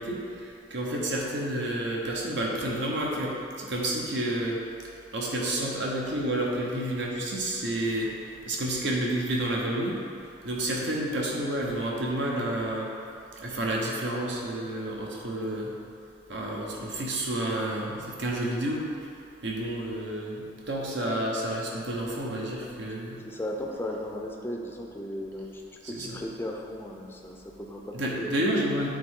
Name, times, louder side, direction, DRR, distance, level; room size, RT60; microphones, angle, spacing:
voice 1, 0.0-4.6 5.1-8.2 8.4-10.0 10.4-12.9 13.4-15.7 16.3-19.1 19.4-23.2 25.8-26.2 27.9-29.0, right 1 dB, 70° right, -2 dB, 0.9 m, -30 dB
voice 2, 23.2-28.3, left 1 dB, 10° left, 0 dB, 0.5 m, -36 dB
8.2 x 3.5 x 3.7 m, 2.6 s
head